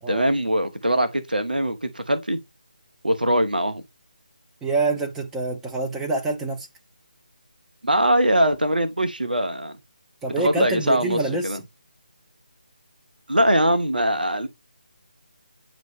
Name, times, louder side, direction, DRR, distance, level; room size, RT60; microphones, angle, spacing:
voice 1, 0.1-2.4 3.0-3.8 7.8-9.7 10.4-11.6 13.3-14.5, right 1 dB, 80° right, 1.0 m, -22 dB
voice 2, 4.6-6.7 10.2-11.6, right 3 dB, 5° right, 0.8 m, -26 dB
8.9 x 3.1 x 3.6 m
figure-of-eight pair, 155°, 5 cm